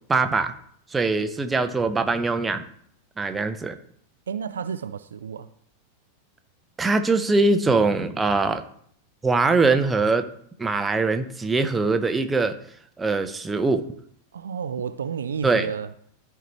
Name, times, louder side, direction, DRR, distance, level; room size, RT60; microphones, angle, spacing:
voice 1, 0.1-0.5 0.9-2.6 3.2-3.8 6.8-8.6 9.2-10.2 10.6-12.5 13.0-13.8 15.4-15.7, right 3 dB, 15° right, 0.7 m, -22 dB
voice 2, 4.3-5.5 14.3-15.9, right 7 dB, 65° right, 0.4 m, -31 dB
13.5 x 4.6 x 3.1 m
figure-of-eight pair, 90°, 0 cm